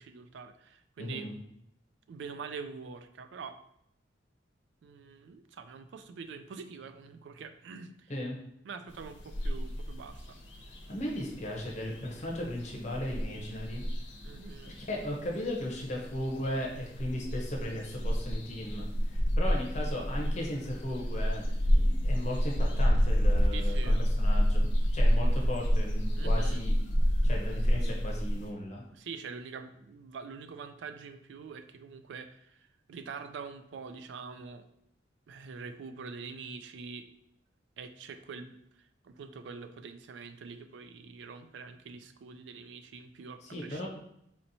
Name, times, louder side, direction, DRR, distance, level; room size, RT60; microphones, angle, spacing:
voice 1, 0.0-1.3 2.1-3.6 4.8-8.1 8.6-10.4 14.2-14.7 23.5-24.0 26.2-26.6 28.9-32.6 32.9-34.7 35.3-37.1 37.8-43.9, right 5 dB, 70° right, 10 dB, 0.3 m, -45 dB
voice 2, 1.0-1.4 8.1-8.4 10.9-13.8 14.6-26.7 27.2-28.8 43.4-43.9, left 1 dB, 35° left, -1 dB, 0.7 m, -36 dB
sound 1, 8.9-28.5, equal, 70° left, 0.7 m, -29 dB
4.2 x 2.9 x 2.6 m, 0.76 s
head